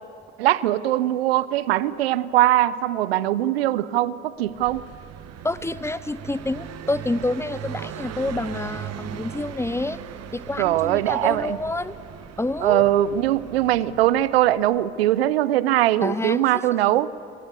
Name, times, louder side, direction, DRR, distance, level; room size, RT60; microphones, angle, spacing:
voice 1, 0.4-4.8 10.6-11.6 12.6-17.1, right 14 dB, 85° right, 19 dB, 0.6 m, -21 dB
Car passing by, 4.4-15.0, right 9 dB, 60° right, 1.2 m, -38 dB
voice 2, 5.4-10.0 10.3-12.0 12.4-12.8 16.0-16.4, left 2 dB, 10° left, 16 dB, 1.0 m, -28 dB
27.0 x 23.5 x 8.3 m, 2.8 s
hypercardioid pair, 45°, 30 cm